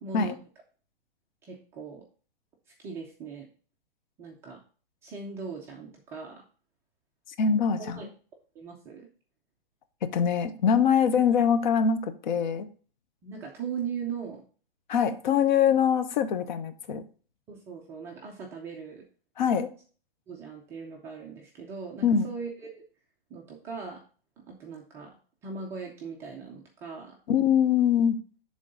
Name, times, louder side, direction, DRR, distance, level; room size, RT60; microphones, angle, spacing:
voice 1, 0.0-0.3 1.4-2.0 2.8-3.5 4.2-4.6 5.0-6.4 7.8-8.1 8.5-9.1 13.2-14.4 17.5-19.0 20.3-22.8 23.3-24.0 24.5-25.1 25.4-27.2, right 5 dB, 10° right, -1 dB, 0.3 m, -39 dB
voice 2, 7.4-8.0 10.0-12.7 14.9-17.0 19.4-19.7 22.0-22.3 27.3-28.2, left 7 dB, 50° left, 10 dB, 0.8 m, -23 dB
10.0 x 3.8 x 3.9 m, 0.41 s
hypercardioid pair, 145°, 30 cm